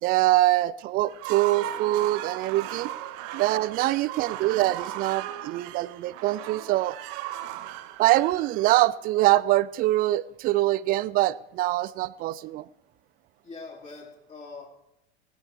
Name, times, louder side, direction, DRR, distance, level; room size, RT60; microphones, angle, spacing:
voice 1, 0.0-2.9 3.3-7.0 8.0-12.7, right 16 dB, 30° right, 0.4 m, -24 dB
sound 1, 1.0-9.2, right 13 dB, 45° right, 0.9 m, -37 dB
voice 2, 13.4-14.7, left 3 dB, 20° left, 3.9 m, -43 dB
18.5 x 12.0 x 3.2 m
figure-of-eight pair, 80°, 33 cm